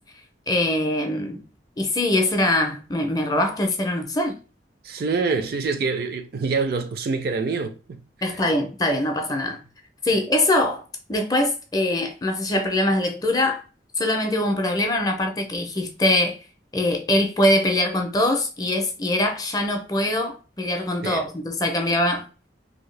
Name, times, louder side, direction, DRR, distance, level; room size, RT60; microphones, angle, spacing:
voice 1, 0.5-1.4 1.8-4.3 8.2-9.6 10.0-10.8 11.1-13.6 14.0-16.4 16.7-22.2, left 1 dB, 20° left, 0.5 m, -23 dB
voice 2, 4.8-8.5 21.0-21.3, right 4 dB, 55° right, 0.4 m, -26 dB
2.7 x 2.7 x 3.2 m
head